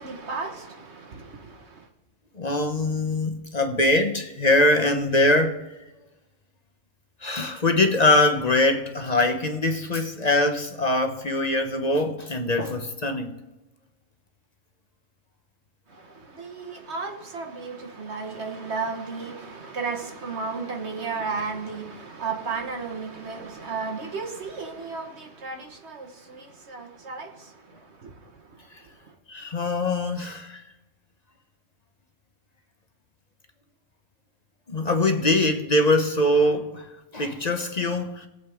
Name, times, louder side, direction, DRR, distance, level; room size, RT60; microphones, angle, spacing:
voice 1, 0.0-1.9 15.9-29.2, right 4 dB, 60° right, 1.7 m, -34 dB
voice 2, 2.4-5.6 7.2-13.4 29.3-30.6 34.7-38.3, left 2 dB, 35° left, 1.0 m, -23 dB
20.5 x 7.9 x 3.6 m
omnidirectional pair, 1.3 m